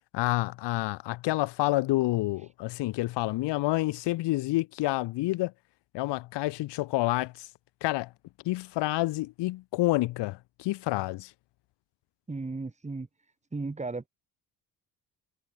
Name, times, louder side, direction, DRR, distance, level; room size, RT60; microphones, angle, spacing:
voice 1, 0.1-5.5 5.9-7.5 7.8-8.1 8.4-11.3, left 18 dB, 90° left, 0.7 m, -28 dB
voice 2, 12.3-13.1 13.5-14.1, right 3 dB, 15° right, 1.6 m, -35 dB
cardioid pair, 90°, 41 cm